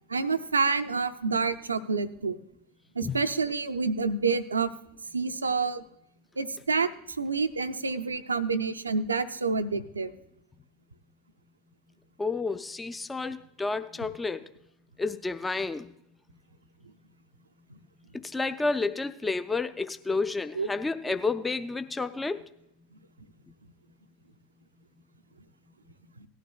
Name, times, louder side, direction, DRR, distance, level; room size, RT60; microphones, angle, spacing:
voice 1, 0.1-2.4 3.0-4.7 5.1-5.8 6.4-10.1 20.5-20.7 21.1-21.2, right 4 dB, 85° right, 10 dB, 0.5 m, -28 dB
voice 2, 12.2-14.5 15.0-15.9 18.1-22.5, left 3 dB, 10° left, 10 dB, 0.4 m, -30 dB
17.5 x 12.0 x 2.3 m, 0.79 s
figure-of-eight pair, 85°, 0 cm